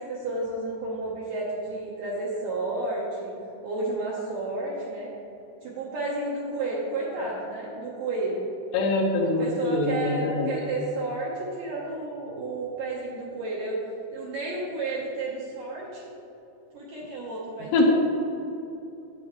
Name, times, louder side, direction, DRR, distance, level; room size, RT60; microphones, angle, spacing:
voice 1, 0.0-3.4 3.6-5.1 5.6-8.5 9.2-13.8 14.1-16.0 16.7-17.9, right 2 dB, 70° right, -5 dB, 2.1 m, -31 dB
voice 2, 8.7-10.5 17.7-18.0, left 2 dB, 75° left, 1 dB, 2.7 m, -23 dB
11.5 x 8.5 x 3.1 m, 2.8 s
omnidirectional pair, 5.2 m